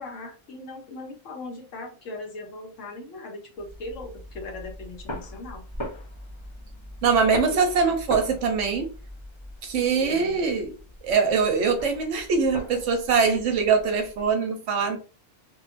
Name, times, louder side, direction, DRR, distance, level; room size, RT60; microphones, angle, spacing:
voice 1, 0.0-5.6 7.5-7.6 9.6-10.5, left 2 dB, 70° left, 1.1 m, -39 dB
sound 1, 3.6-14.3, left 1 dB, 30° left, 0.6 m, -40 dB
voice 2, 7.0-8.9 9.6-10.7 11.0-15.0, right 5 dB, 70° right, 0.9 m, -23 dB
2.8 x 2.2 x 2.4 m
omnidirectional pair, 1.4 m